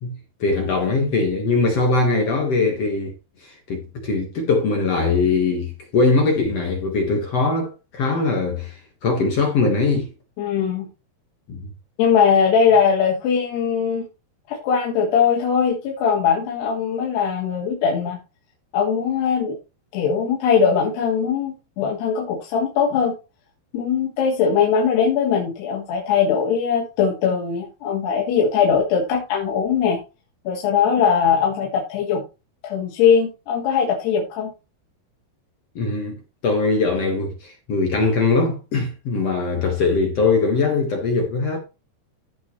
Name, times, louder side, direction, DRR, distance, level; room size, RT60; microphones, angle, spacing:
voice 1, 0.0-3.1 3.4-10.1 11.5-11.7 35.8-41.6, left 3 dB, 55° left, 1.9 m, -21 dB
voice 2, 10.4-10.9 12.0-14.1 14.5-18.2 18.7-19.6 19.9-23.2 23.7-30.0 30.5-32.2 32.6-34.5, left 6 dB, 75° left, 3.6 m, -20 dB
15.0 x 5.6 x 3.1 m
omnidirectional pair, 4.8 m